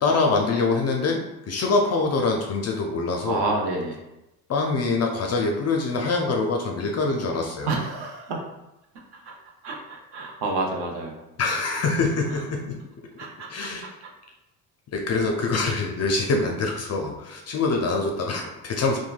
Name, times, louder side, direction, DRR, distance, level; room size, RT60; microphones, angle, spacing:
voice 1, 0.0-3.4 4.5-7.7 11.4-12.8 13.5-13.9 14.9-19.0, left 3 dB, 35° left, 1 dB, 0.4 m, -24 dB
voice 2, 3.2-4.0 7.7-8.4 9.2-9.3 9.6-11.2 13.2-13.7 14.0-14.1, right 3 dB, 55° right, 0 dB, 0.8 m, -29 dB
3.1 x 2.2 x 2.3 m, 0.94 s
hypercardioid pair, 55°, 48 cm